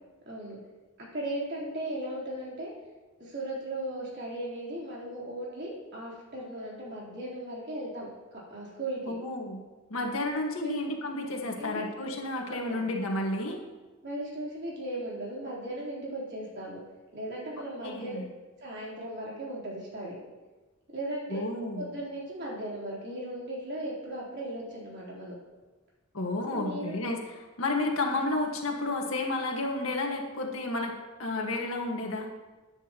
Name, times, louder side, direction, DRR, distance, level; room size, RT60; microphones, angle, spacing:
voice 1, 0.3-0.6 1.1-2.7 3.2-8.1 8.5-9.1 10.6-10.8 11.6-11.8 12.5-12.8 14.0-16.8 17.1-18.2 18.6-20.2 20.9-21.4 21.8-25.3 26.5-26.9 28.2-28.3, right 1 dB, 55° right, -5 dB, 3.8 m, -37 dB
voice 2, 9.1-9.6 9.9-13.6 17.8-18.3 21.3-21.9 26.1-27.2 27.6-32.3, left 2 dB, 85° left, 1 dB, 1.7 m, -31 dB
14.5 x 9.7 x 3.0 m, 1.2 s
head